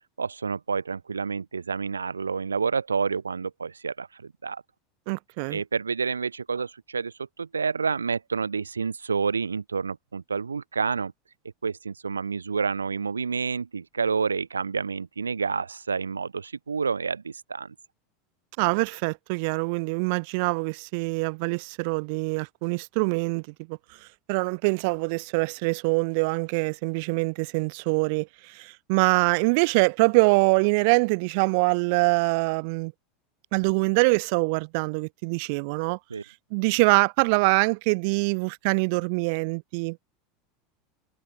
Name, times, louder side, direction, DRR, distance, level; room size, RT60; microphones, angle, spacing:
voice 1, 0.2-4.6 5.5-11.1 11.6-17.7 36.1-36.2, right 5 dB, 80° right, 0.9 m, -29 dB
voice 2, 5.1-5.6 18.6-23.8 24.3-32.9 33.5-36.0 36.5-40.0, right 32 dB, 55° right, 1.4 m, -24 dB
figure-of-eight pair, 80°, 0 cm